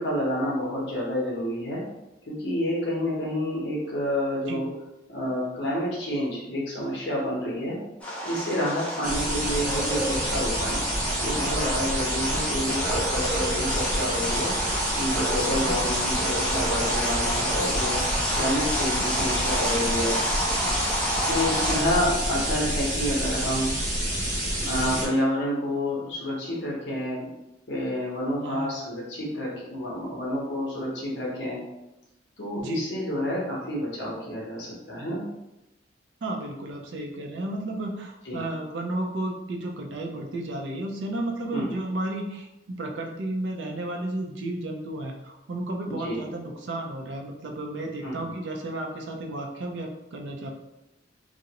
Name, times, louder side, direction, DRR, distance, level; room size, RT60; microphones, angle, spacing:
voice 1, 0.0-1.8 2.3-4.7 5.1-7.8 8.2-10.8 11.2-14.5 15.0-18.0 18.4-20.2 21.3-23.7 24.6-27.3 27.7-31.6 32.4-35.2 38.3-38.4 41.5-41.6 45.9-46.2 48.0-48.3, left 1 dB, 65° left, -5 dB, 0.7 m, -29 dB
sound 1, 8.0-21.8, equal, 5° left, 0.4 m, -29 dB
sound 2, 9.0-25.1, right 1 dB, 40° right, 0.8 m, -28 dB
voice 2, 36.2-50.5, right 1 dB, 70° right, 2 dB, 0.4 m, -33 dB
2.4 x 2.0 x 2.8 m, 0.94 s
head